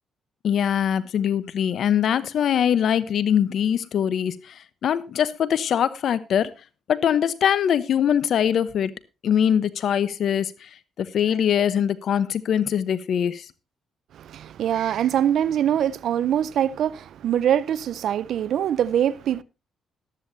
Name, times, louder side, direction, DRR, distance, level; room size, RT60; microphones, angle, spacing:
voice 1, 0.4-6.5 6.9-8.9 9.2-10.7 11.0-13.4, left 9 dB, 65° left, 1.0 m, -22 dB
voice 2, 14.1-19.4, right 10 dB, 70° right, 0.6 m, -23 dB
14.5 x 12.5 x 2.7 m
cardioid pair, 90°, 0 cm